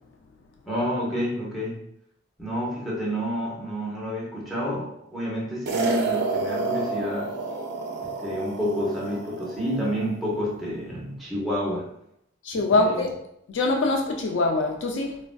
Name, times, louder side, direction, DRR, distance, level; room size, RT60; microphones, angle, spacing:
voice 1, 0.7-1.8 2.4-7.3 8.0-11.9 12.7-13.1, equal, ahead, 0.7 m, -29 dB
sound 1, 5.7-10.1, right 3 dB, 55° right, 0.4 m, -29 dB
voice 2, 12.4-13.1 13.5-15.2, left 2 dB, 60° left, 0.3 m, -23 dB
3.2 x 2.5 x 2.2 m
head